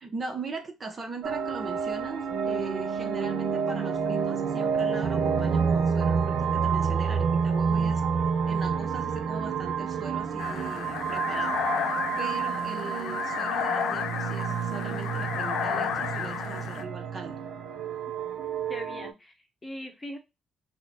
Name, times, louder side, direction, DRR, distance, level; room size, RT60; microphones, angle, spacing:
voice 1, 0.0-8.2 8.5-11.6 11.9-17.4, right 3 dB, 40° right, 4 dB, 0.7 m, -40 dB
sound 1, 1.2-19.1, right 6 dB, 75° right, 0.5 m, -29 dB
sound 2, 10.4-16.8, left 8 dB, 80° left, 0.4 m, -32 dB
voice 2, 18.7-20.2, equal, 20° left, 4 dB, 0.8 m, -40 dB
2.9 x 2.1 x 3.8 m, 0.24 s
cardioid pair, 90°, 0 cm